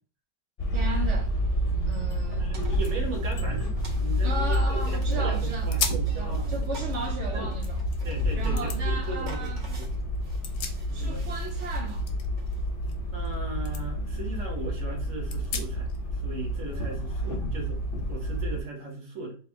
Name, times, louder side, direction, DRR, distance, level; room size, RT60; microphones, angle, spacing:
sound 1, 0.6-18.6, equal, 40° left, 0.8 m, -29 dB
voice 1, 0.7-1.3 1.8-2.6 4.2-5.7 6.1-7.8 8.4-9.6 10.9-12.1, right 3 dB, 70° right, 0.6 m, -36 dB
sound 2, 2.2-2.3 2.6-4.8 5.2-5.3 5.7-6.2 6.6-8.0 8.6-8.8 10.2-11.3 11.5-13.4 13.7-13.8 14.3-14.4 15.3-16.0, left 6 dB, 65° left, 1.1 m, -38 dB
voice 2, 2.4-6.9 7.3-7.6 8.0-10.0 10.9-11.3 13.1-17.8 18.1-19.4, right 3 dB, 45° right, 1.6 m, -38 dB
sound 3, 2.5-12.7, right 1 dB, 30° right, 1.0 m, -47 dB
4.2 x 3.0 x 3.5 m
omnidirectional pair, 2.0 m